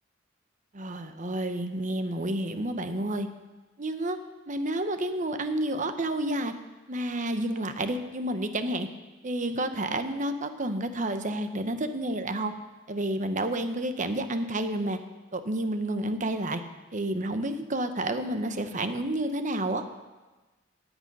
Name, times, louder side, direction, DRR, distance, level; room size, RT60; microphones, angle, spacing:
voice 1, 0.7-3.3 3.8-4.2 4.5-6.5 6.9-8.9 9.2-12.5 12.9-15.0 15.3-16.6 16.9-19.8, right 1 dB, 40° right, 9 dB, 0.9 m, -30 dB
17.0 x 9.0 x 5.4 m, 1.2 s
head